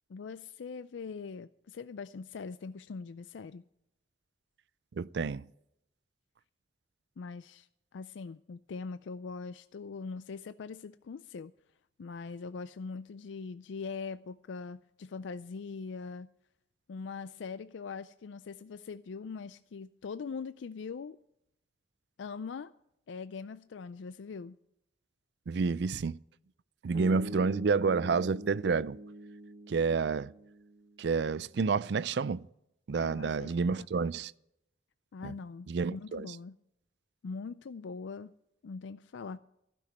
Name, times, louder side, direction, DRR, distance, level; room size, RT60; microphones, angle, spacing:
voice 1, 0.1-3.6 7.2-7.7 7.9-11.5 12.0-16.3 16.9-21.2 22.2-22.7 23.1-24.6 33.0-33.9 35.1-36.6 37.2-38.3 38.6-39.4, left 5 dB, 85° left, 0.4 m, -42 dB
voice 2, 5.0-5.4 25.5-26.2 26.8-29.0 29.7-30.3 31.0-32.5 32.9-34.3 35.2-35.3 35.7-36.4, right 5 dB, 70° right, 0.4 m, -29 dB
sound 1, 26.9-31.1, right 1 dB, 50° right, 1.5 m, -44 dB
15.0 x 6.1 x 9.2 m
head